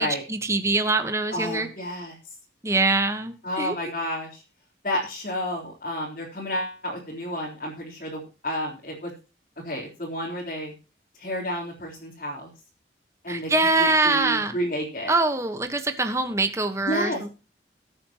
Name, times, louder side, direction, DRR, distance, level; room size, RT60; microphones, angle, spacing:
voice 1, 0.0-1.7 2.6-3.7 13.3-14.6 15.1-17.3, right 3 dB, 15° right, 8 dB, 1.3 m, -24 dB
voice 2, 1.3-2.2 3.4-4.4 4.8-9.1 9.6-10.7 11.2-12.5 13.2-13.5 13.8-15.1 16.8-17.3, equal, 45° left, -4 dB, 3.9 m, -31 dB
21.0 x 8.8 x 3.0 m, 0.32 s
head